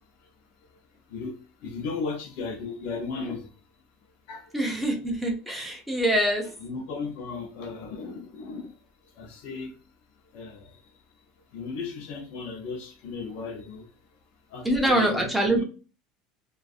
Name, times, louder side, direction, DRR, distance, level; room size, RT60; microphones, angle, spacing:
voice 1, 1.6-3.5 4.3-4.5 5.0-5.1 6.4-8.7 9.2-9.7 10.3-10.8 11.5-13.9 14.5-15.6, left 4 dB, 60° left, 0.6 m, -35 dB
voice 2, 4.5-6.4 14.6-15.6, right 1 dB, 5° right, 0.5 m, -24 dB
2.5 x 2.3 x 2.4 m
cardioid pair, 150°, 3 cm